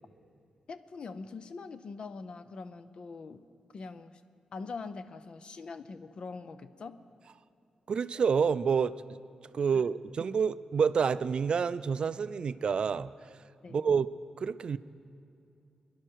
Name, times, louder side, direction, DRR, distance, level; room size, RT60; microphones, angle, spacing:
voice 1, 0.7-3.4 3.7-4.2 4.5-7.0 9.7-9.8 13.6-13.9, left 4 dB, 50° left, 12 dB, 0.5 m, -43 dB
voice 2, 7.9-8.9 9.5-13.1 13.7-14.1 14.4-14.8, right 6 dB, 50° right, 15 dB, 0.3 m, -28 dB
23.5 x 11.0 x 4.6 m, 2.7 s
wide cardioid pair, 165°, 2 cm